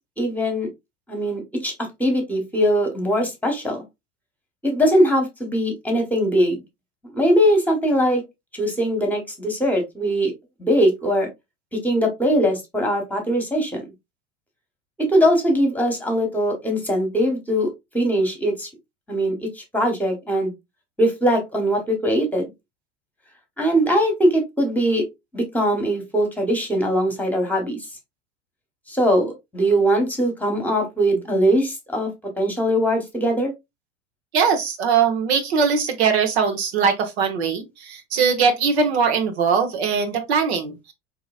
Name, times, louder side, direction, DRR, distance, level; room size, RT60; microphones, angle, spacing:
voice 1, 0.2-0.7 1.1-3.8 4.6-6.6 7.0-8.2 8.6-10.3 10.6-11.3 11.7-13.9 15.0-17.7 17.9-18.7 19.1-20.5 21.0-22.5 23.6-25.0 25.3-27.8 28.9-32.1 32.4-33.5, equal, 5° left, 1.2 m, -21 dB
voice 2, 34.3-40.9, right 6 dB, 80° right, 0.9 m, -21 dB
3.8 x 2.8 x 2.3 m
hypercardioid pair, 100°, 32 cm